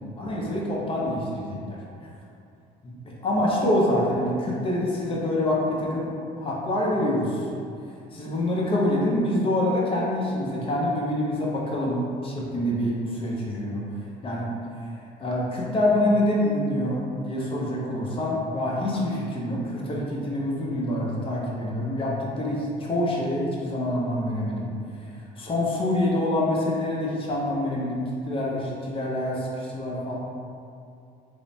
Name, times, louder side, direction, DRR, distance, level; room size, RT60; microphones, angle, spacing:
voice 1, 0.2-1.8 2.8-6.1 6.4-7.4 8.1-13.8 14.2-14.4 15.2-24.7 25.4-30.2, left 1 dB, 30° left, -4 dB, 0.6 m, -26 dB
3.0 x 2.0 x 2.7 m, 2.5 s
cardioid pair, 110°, 17 cm